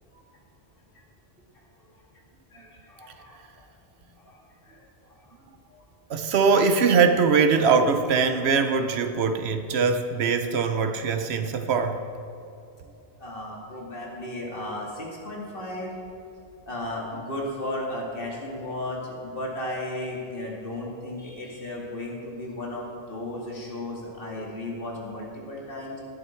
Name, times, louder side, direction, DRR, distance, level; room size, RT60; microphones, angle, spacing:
voice 1, 2.5-3.4 4.2-4.8 5.7-5.8 13.2-15.9 16.7-26.0, left 1 dB, 60° left, -3 dB, 2.4 m, -35 dB
voice 2, 6.1-12.0, right 5 dB, 90° right, 8 dB, 1.0 m, -22 dB
18.5 x 7.9 x 4.5 m, 2.7 s
omnidirectional pair, 1.0 m